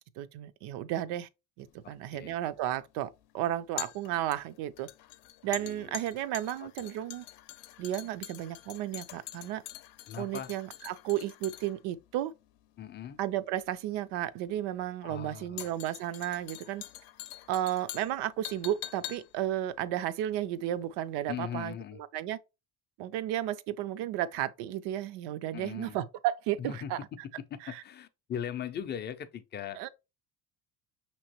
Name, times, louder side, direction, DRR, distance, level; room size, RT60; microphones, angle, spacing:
voice 1, 0.2-1.3 1.6-4.9 5.4-7.2 7.8-9.6 10.2-12.3 13.2-16.8 17.5-21.8 22.1-22.4 23.0-27.0 27.7-27.8 29.8-29.9, right 12 dB, 80° right, 0.6 m, -33 dB
Stirring Sugar In My Coffee, 1.6-20.9 21.2-21.3, left 14 dB, 85° left, 0.6 m, -45 dB
voice 2, 1.8-2.4 5.6-6.0 6.6-6.9 10.1-10.5 12.8-13.2 15.0-15.6 21.3-22.0 25.5-26.0 26.6-26.9 27.4-29.9, left 9 dB, 30° left, 0.3 m, -40 dB
5.7 x 3.0 x 2.9 m
cardioid pair, 135°, 40 cm